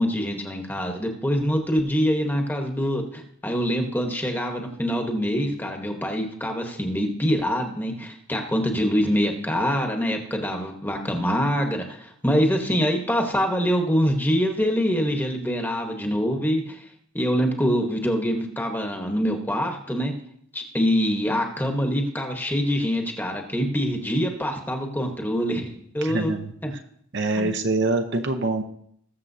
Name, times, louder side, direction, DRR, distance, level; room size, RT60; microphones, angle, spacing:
voice 1, 0.0-16.8 17.1-20.1 20.5-26.3 26.6-26.7 27.4-27.5, equal, 10° left, 3 dB, 1.1 m, -25 dB
voice 2, 26.0-26.5 27.1-28.6, right 2 dB, 50° right, 6 dB, 0.7 m, -24 dB
20.0 x 7.2 x 2.7 m, 0.68 s
head